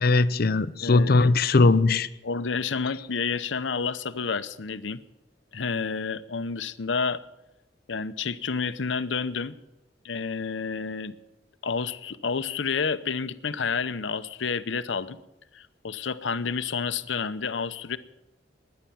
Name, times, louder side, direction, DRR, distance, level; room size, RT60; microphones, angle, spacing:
voice 1, 0.0-2.1, left 3 dB, 55° left, 0.6 m, -20 dB
voice 2, 0.8-1.3 1.6-1.7 2.2-5.0 5.5-7.2 7.9-9.6 10.0-11.2 11.6-15.2 15.5-18.0, left 5 dB, 85° left, 0.8 m, -30 dB
16.5 x 10.5 x 7.0 m
head